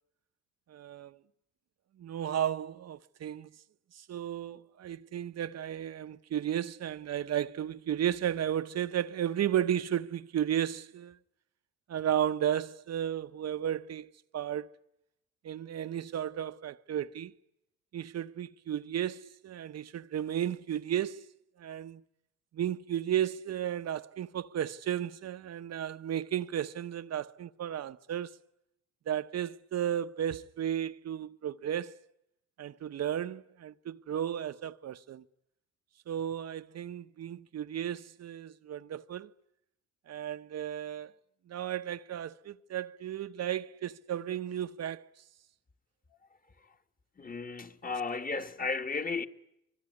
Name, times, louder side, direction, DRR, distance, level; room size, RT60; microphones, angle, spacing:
voice 1, 0.7-1.2 2.0-3.5 3.9-11.2 11.9-14.7 15.4-17.3 17.9-21.3 21.6-22.0 22.5-28.4 29.1-32.0 32.6-35.2 36.1-39.3 40.1-41.1 41.5-45.1, right 10 dB, 60° right, 0.9 m, -34 dB
voice 2, 47.2-49.3, left 4 dB, 30° left, 1.8 m, -34 dB
25.5 x 22.0 x 9.7 m
cardioid pair, 90°, 30 cm